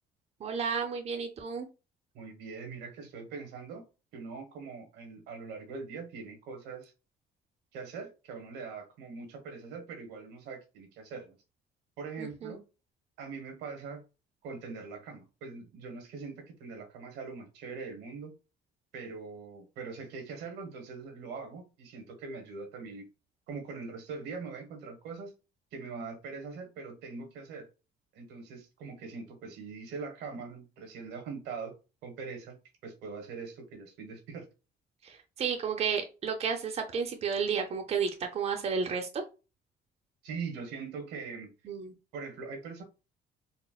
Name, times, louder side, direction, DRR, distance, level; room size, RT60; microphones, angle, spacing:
voice 1, 0.4-1.7 12.2-12.6 35.0-39.2 41.7-41.9, right 6 dB, 40° right, 0.6 m, -32 dB
voice 2, 2.1-3.8 4.1-6.9 7.7-11.4 12.0-12.6 13.2-14.0 14.4-18.3 18.9-23.1 23.5-25.3 25.7-27.7 28.1-31.7 32.0-34.5 40.2-41.5 42.1-42.8, right 4 dB, 85° right, 1.2 m, -42 dB
4.1 x 2.1 x 2.3 m
cardioid pair, 110°, 17 cm